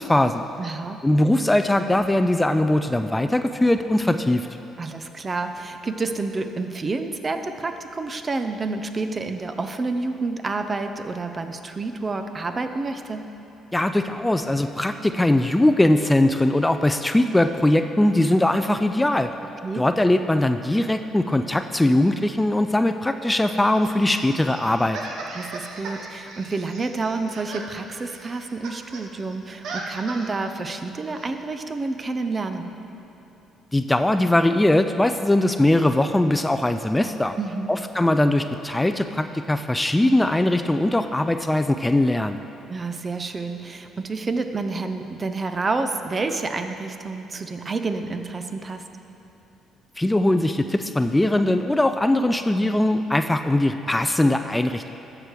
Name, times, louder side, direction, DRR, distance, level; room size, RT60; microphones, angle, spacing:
voice 1, 0.0-0.5 1.0-4.5 13.7-19.3 19.8-25.0 33.7-37.4 37.7-42.4 50.0-54.9, left 1 dB, 15° left, 8 dB, 0.4 m, -20 dB
voice 2, 0.6-1.0 4.8-13.2 19.6-19.9 25.3-32.7 37.4-37.7 42.7-48.9, right 3 dB, 35° right, 8 dB, 0.7 m, -29 dB
sound 1, 23.2-29.1 29.3-30.5 31.2-31.3, right 3 dB, 70° right, 0.9 m, -38 dB
14.0 x 4.9 x 4.6 m, 3.0 s
hypercardioid pair, 55°, 0 cm